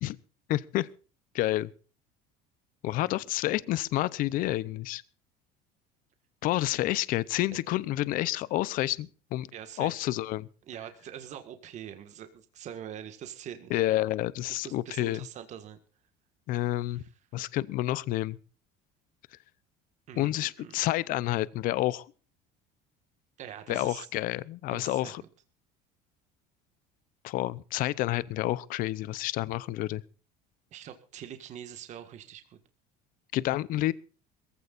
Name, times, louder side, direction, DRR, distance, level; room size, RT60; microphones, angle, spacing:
voice 1, 0.5-0.9 1.3-1.7 2.8-5.0 6.4-9.5 9.8-10.5 13.7-15.2 16.5-17.0 17.3-18.4 20.2-22.1 23.7-25.2 27.2-30.0 33.3-33.9, left 16 dB, 50° left, 0.7 m, -29 dB
voice 2, 9.5-10.0 10.7-13.8 14.5-15.8 16.9-17.1 20.1-20.8 23.4-24.1 24.7-25.1 29.1-29.2 30.7-32.6, right 10 dB, 40° right, 1.7 m, -44 dB
22.5 x 15.5 x 2.5 m
cardioid pair, 145°, 18 cm